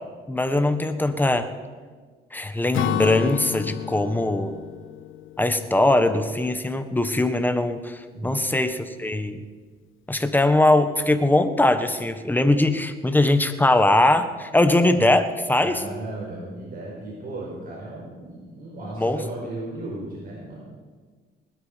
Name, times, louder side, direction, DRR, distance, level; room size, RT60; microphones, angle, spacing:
voice 1, 0.3-1.5 2.3-4.6 5.4-9.4 10.1-15.8 19.0-19.2, left 2 dB, 10° left, 9 dB, 1.3 m, -21 dB
Acoustic guitar / Strum, 2.7-6.4, left 13 dB, 80° left, 0.5 m, -31 dB
voice 2, 8.1-8.5 15.6-20.6, right 2 dB, 45° right, -4 dB, 4.8 m, -35 dB
20.0 x 12.5 x 5.2 m, 1.5 s
cardioid pair, 90°, 20 cm